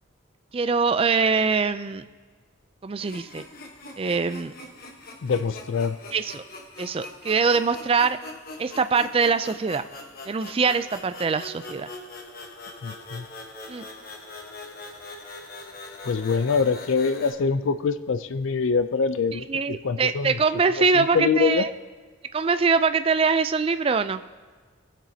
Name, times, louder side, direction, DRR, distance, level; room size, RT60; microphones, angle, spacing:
voice 1, 0.5-2.1 2.8-3.4 4.0-4.5 6.1-6.4 6.8-8.2 8.6-9.8 10.3-11.9 13.7-13.8 19.5-21.7 22.3-24.2, right 5 dB, 30° right, 11 dB, 0.3 m, -23 dB
sound 1, 3.0-17.3, left 2 dB, 45° left, 1.2 m, -42 dB
voice 2, 5.2-6.0 12.8-13.2 16.0-19.4 19.8-20.3 20.8-21.7, left 5 dB, 70° left, 12 dB, 0.4 m, -24 dB
19.0 x 7.5 x 2.8 m, 1.5 s
head